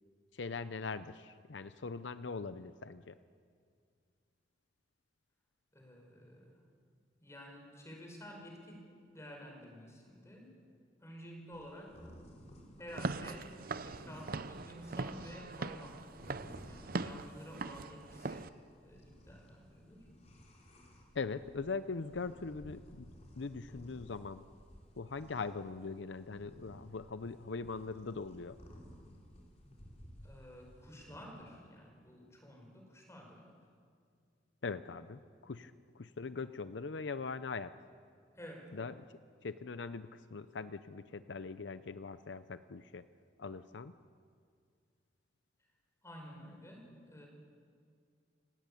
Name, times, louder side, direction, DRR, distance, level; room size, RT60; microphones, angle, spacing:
voice 1, 0.3-3.2 21.1-23.1 23.4-24.4 25.0-28.6 34.6-37.7 38.7-39.0 39.4-43.1 43.4-43.9, left 4 dB, 75° left, 12 dB, 0.6 m, -41 dB
voice 2, 5.7-6.6 7.2-10.5 11.0-12.0 12.8-13.5 13.8-18.5 18.8-20.1 29.6-29.8 30.2-33.5 38.3-38.7 46.0-47.3, equal, 15° left, 1 dB, 5.0 m, -51 dB
sound 1, 11.5-31.2, equal, 35° left, 4.2 m, -57 dB
Walk footsteps / Siren, 12.9-18.5, right 3 dB, 50° right, 0.7 m, -41 dB
29.0 x 17.5 x 8.6 m, 2.2 s
head